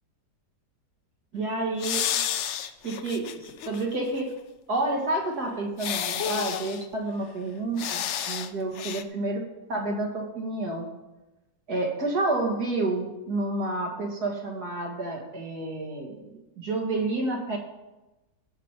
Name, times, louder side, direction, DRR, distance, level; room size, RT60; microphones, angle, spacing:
voice 1, 1.3-2.1 2.8-3.3 3.7-4.3 4.7-9.4 9.7-10.9 11.7-16.2 16.6-17.6, right 2 dB, 65° right, 0 dB, 2.4 m, -29 dB
sound 1, 1.8-3.8 4.2-4.3 5.8-6.8 7.8-8.5 8.7-9.0, left 9 dB, 70° left, 0.7 m, -30 dB
15.5 x 6.2 x 4.5 m, 1.0 s
omnidirectional pair, 1.8 m